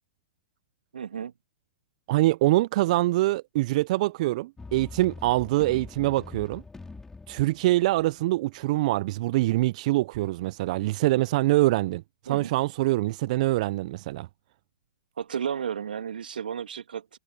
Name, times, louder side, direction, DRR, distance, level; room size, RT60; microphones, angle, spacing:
voice 1, 0.9-1.3 12.3-12.5 15.2-17.2, right 8 dB, 70° right, 2.2 m, -33 dB
voice 2, 2.1-6.6 7.3-14.3, right 18 dB, 50° right, 0.6 m, -24 dB
sound 1, 4.6-8.6, left 3 dB, 10° left, 5.1 m, -44 dB
hypercardioid pair, 115°, 5 cm